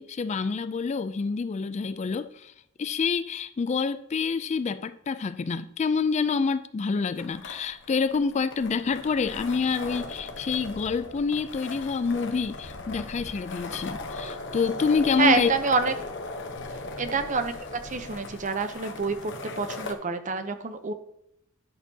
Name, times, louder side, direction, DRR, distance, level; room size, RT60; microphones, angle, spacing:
voice 1, 0.0-2.5 2.8-15.5, left 5 dB, 35° left, 0.3 m, -27 dB
sound 1, 7.2-19.9, left 2 dB, 60° left, 1.0 m, -38 dB
voice 2, 15.2-15.9 17.0-20.9, right 4 dB, 40° right, 0.7 m, -27 dB
10.5 x 6.5 x 2.8 m
head